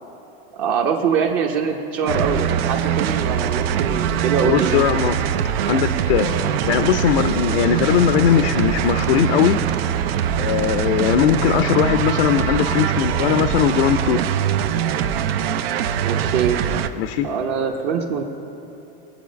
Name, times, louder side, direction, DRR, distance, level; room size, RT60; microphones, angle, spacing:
voice 1, 0.5-5.0 16.0-16.6 17.2-18.2, right 6 dB, 45° right, 1 dB, 1.0 m, -23 dB
sound 1, 2.1-16.9, right 9 dB, 75° right, 0.7 m, -22 dB
voice 2, 4.4-5.2 5.7-9.6 10.3-14.2 16.9-17.3, left 10 dB, 75° left, 9 dB, 0.7 m, -19 dB
20.5 x 7.9 x 5.2 m, 2.9 s
supercardioid pair, 155°, 30 cm